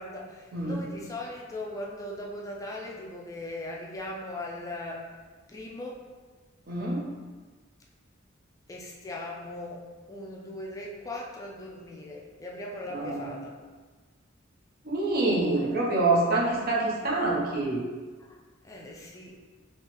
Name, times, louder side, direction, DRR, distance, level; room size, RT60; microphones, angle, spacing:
voice 1, 0.0-5.0 5.5-6.0 8.7-9.8 10.1-13.5 15.5-15.8 18.3-18.4 18.6-19.3, left 1 dB, 15° left, -2 dB, 0.4 m, -39 dB
voice 2, 0.5-0.8 6.7-7.1 12.9-13.4 14.9-17.8, right 2 dB, 50° right, -3 dB, 0.7 m, -26 dB
3.8 x 2.9 x 2.9 m, 1.4 s
head